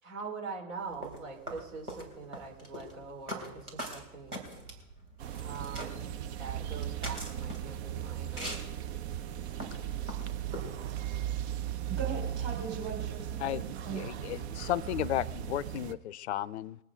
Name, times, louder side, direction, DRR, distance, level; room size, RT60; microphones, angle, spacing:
voice 1, 0.0-4.4 5.4-6.0 6.4-8.6, right 4 dB, 60° right, 4.5 m, -43 dB
sound 1, 0.9-10.7, equal, 90° right, 3.6 m, -43 dB
sound 2, 5.2-15.9, right 10 dB, 45° right, 0.8 m, -37 dB
voice 2, 11.9-14.0, right 7 dB, 20° right, 3.7 m, -39 dB
voice 3, 13.4-16.8, left 13 dB, 50° left, 0.5 m, -34 dB
22.5 x 8.9 x 5.0 m
figure-of-eight pair, 95°, 44 cm